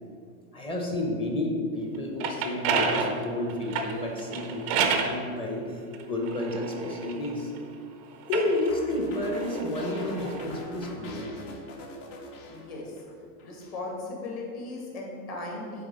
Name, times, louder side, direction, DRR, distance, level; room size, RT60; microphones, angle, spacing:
voice 1, 0.5-7.5 8.3-11.4, left 1 dB, 10° left, 1 dB, 0.7 m, -31 dB
sound 1, 2.0-5.2 5.9-7.6 8.2-10.5, right 5 dB, 25° right, 0.3 m, -30 dB
sound 2, 8.7-13.1 13.4-13.8, left 1 dB, 55° left, 1.4 m, -42 dB
voice 2, 12.5-12.9 13.4-15.8, left 2 dB, 35° left, -2 dB, 1.9 m, -37 dB
7.7 x 4.6 x 5.3 m, 2.3 s
supercardioid pair, 150°, 46 cm